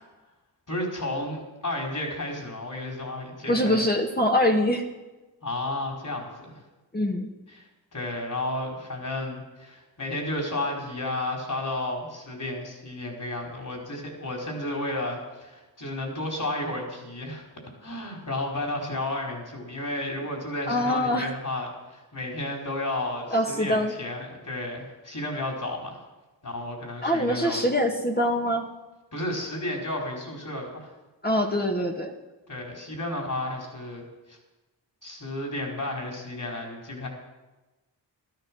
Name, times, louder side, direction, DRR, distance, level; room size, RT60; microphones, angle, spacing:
voice 1, 0.7-3.9 5.4-6.6 7.5-7.7 7.9-17.4 17.8-26.0 26.4-27.6 29.1-30.9 32.5-34.4 35.0-37.1, left 1 dB, 45° left, 1 dB, 4.9 m, -32 dB
voice 2, 3.5-4.8 6.9-7.3 20.7-21.3 23.3-23.9 27.0-28.7 31.2-32.1, left 1 dB, 20° left, 1 dB, 1.8 m, -24 dB
13.5 x 13.0 x 6.3 m, 1.1 s
cardioid pair, 65°, 43 cm